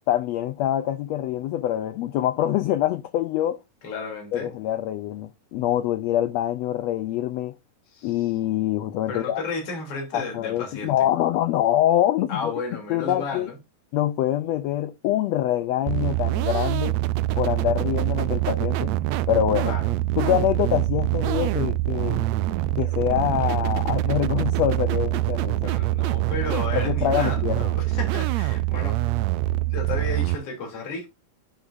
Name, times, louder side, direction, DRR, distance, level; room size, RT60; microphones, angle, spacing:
voice 1, 0.1-3.6 4.3-7.5 8.0-9.4 10.1-12.5 12.9-13.5 13.9-17.0 17.4-18.9 19.3-19.8 20.2-22.3 22.8-25.7 26.7-27.7, left 12 dB, 90° left, 1.5 m, -25 dB
voice 2, 3.8-4.5 7.9-8.3 9.1-11.0 12.3-13.6 19.7-19.9 25.3-29.0 29.7-31.1, left 4 dB, 45° left, 4.0 m, -33 dB
sound 1, 15.9-30.4, right 16 dB, 90° right, 1.5 m, -24 dB
11.5 x 6.4 x 2.6 m
omnidirectional pair, 3.7 m